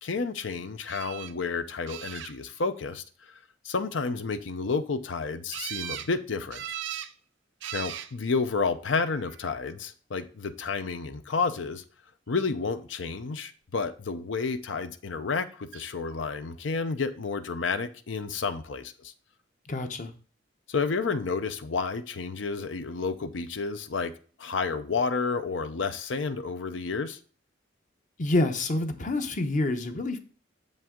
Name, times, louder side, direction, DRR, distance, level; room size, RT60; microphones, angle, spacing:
voice 1, 0.0-3.3 3.6-6.6 7.7-11.8 12.3-19.1 20.7-24.1 24.4-27.2, left 4 dB, 75° left, 0.6 m, -30 dB
sound 1, 0.9-1.3 1.9-2.6 5.5-6.1 6.5-7.1 7.6-8.1 9.0-9.5 15.7-15.8 16.2-16.3, right 11 dB, 70° right, 0.5 m, -38 dB
voice 2, 19.7-20.1 28.2-30.2, left 2 dB, 45° left, 0.8 m, -27 dB
7.1 x 5.5 x 3.7 m
head